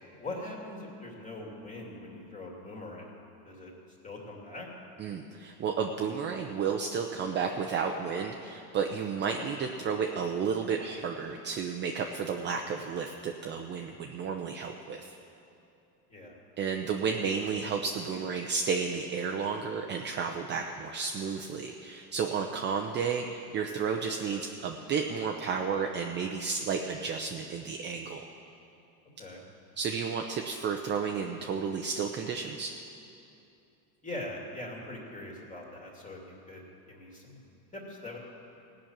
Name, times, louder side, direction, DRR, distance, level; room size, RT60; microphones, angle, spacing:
voice 1, 0.2-3.1 3.4-3.7 4.0-4.7 16.1-16.4 29.2-29.4 34.0-37.4 37.7-38.2, left 2 dB, 15° left, -1 dB, 2.6 m, -42 dB
voice 2, 5.0-15.1 16.6-28.3 29.8-32.7, right 6 dB, 25° right, 3 dB, 0.6 m, -32 dB
16.5 x 6.4 x 8.9 m, 2.7 s
supercardioid pair, 130°, 45 cm